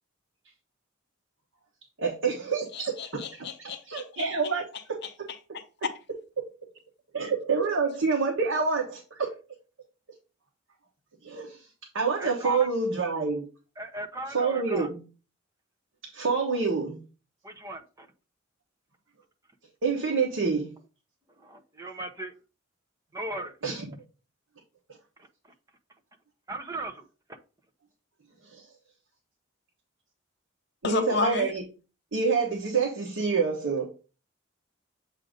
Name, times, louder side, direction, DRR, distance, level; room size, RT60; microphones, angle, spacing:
voice 1, 2.0-3.2 3.6-5.0 6.4-6.5 7.1-9.3 11.2-11.6 11.9-13.5 14.3-15.0 16.1-17.0 19.8-20.7 23.6-24.0 28.5-28.6 30.8-31.6 32.1-33.9, right 4 dB, 75° right, 1.1 m, -27 dB
voice 2, 2.7-4.0 30.8-31.5, left 4 dB, 55° left, 0.7 m, -31 dB
voice 3, 12.2-12.7 13.8-14.9 17.4-18.1 21.4-22.3 23.1-23.5 26.5-27.0, right 1 dB, 15° right, 0.7 m, -37 dB
7.5 x 2.6 x 5.0 m
head